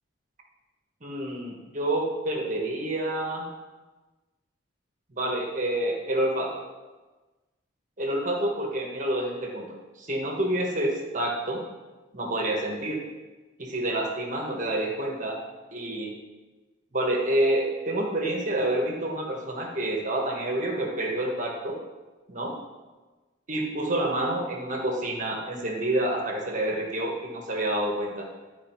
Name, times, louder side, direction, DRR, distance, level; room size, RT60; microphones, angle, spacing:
voice 1, 1.0-3.5 5.1-6.5 8.0-9.7 10.0-11.6 12.1-13.0 13.6-15.4 15.7-16.2 16.9-21.8 22.3-22.5 23.5-28.3, right 1 dB, 40° right, 0 dB, 1.2 m, -28 dB
11.0 x 4.9 x 4.4 m, 1.2 s
head